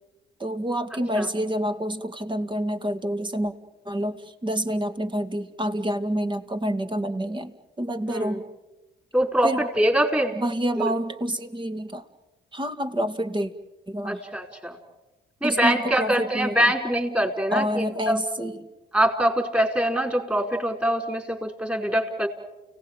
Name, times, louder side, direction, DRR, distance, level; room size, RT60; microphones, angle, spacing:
voice 1, 0.4-3.5 3.9-8.4 9.4-9.6 10.4-12.0 12.5-13.5 13.9-14.2 15.4-16.7 17.5-18.6, equal, 25° right, 8 dB, 2.4 m, -28 dB
voice 2, 8.1-8.4 9.1-10.4 10.8-10.9 14.0-14.8 15.4-18.2 18.9-22.3, right 1 dB, 5° right, 4 dB, 4.6 m, -24 dB
30.0 x 18.0 x 9.1 m, 1.1 s
cardioid pair, 90°, 20 cm